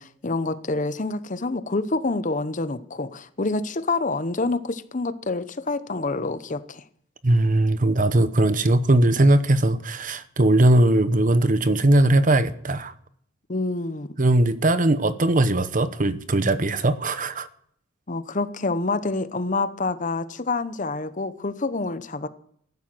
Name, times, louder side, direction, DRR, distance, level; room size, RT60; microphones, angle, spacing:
voice 1, 0.0-6.8 13.5-14.1 18.1-22.3, left 3 dB, 40° left, 0.9 m, -27 dB
voice 2, 7.2-12.9 14.2-17.5, right 1 dB, 40° right, 0.9 m, -19 dB
15.0 x 11.5 x 7.7 m
head